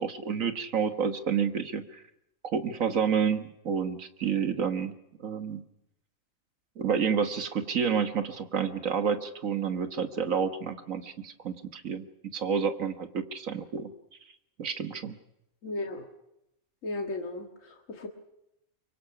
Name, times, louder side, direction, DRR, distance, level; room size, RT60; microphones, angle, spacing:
voice 1, 0.0-2.0 2.4-4.9 5.2-5.6 6.8-12.1 12.3-13.9 14.6-15.2, right 6 dB, 80° right, 9 dB, 1.8 m, -29 dB
voice 2, 15.6-16.1 16.8-18.1, left 2 dB, 75° left, 3 dB, 2.2 m, -35 dB
24.0 x 24.0 x 5.9 m, 0.86 s
omnidirectional pair, 1.4 m